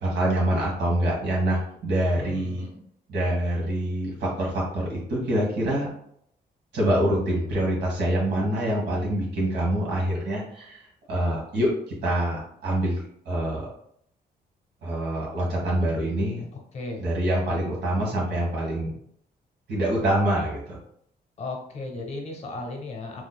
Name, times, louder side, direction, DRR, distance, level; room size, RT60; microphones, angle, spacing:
voice 1, 0.0-2.7 3.1-5.9 6.7-13.0 13.2-13.6 14.8-16.4 17.0-18.9 19.7-20.8, right 1 dB, 85° right, -4 dB, 1.3 m, -25 dB
voice 2, 2.2-2.8 16.7-17.1 17.5-17.6 21.4-23.2, left 3 dB, 40° left, 2 dB, 0.8 m, -35 dB
3.8 x 2.9 x 2.2 m, 0.68 s
cardioid pair, 155°, 17 cm